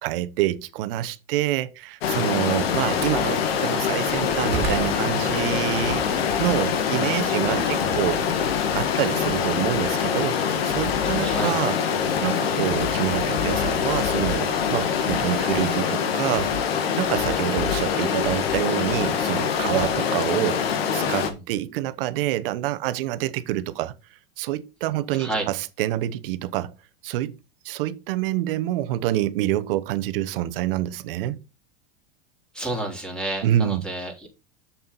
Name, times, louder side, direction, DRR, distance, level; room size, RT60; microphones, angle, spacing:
voice 1, 0.0-8.3 8.7-11.8 12.2-23.9 24.4-26.7 27.0-27.3 27.6-31.4 33.4-33.8, right 13 dB, 65° right, 1.0 m, -27 dB
Stream, 2.0-21.3, left 7 dB, 80° left, 1.9 m, -24 dB
Slam, 2.6-3.3 3.8-6.2 6.6-9.0, right 5 dB, 35° right, 2.3 m, -36 dB
voice 2, 11.2-11.6 21.2-21.4 25.2-25.5 32.5-34.3, right 2 dB, 5° left, 3.6 m, -30 dB
7.3 x 7.0 x 4.1 m
supercardioid pair, 130°, 30 cm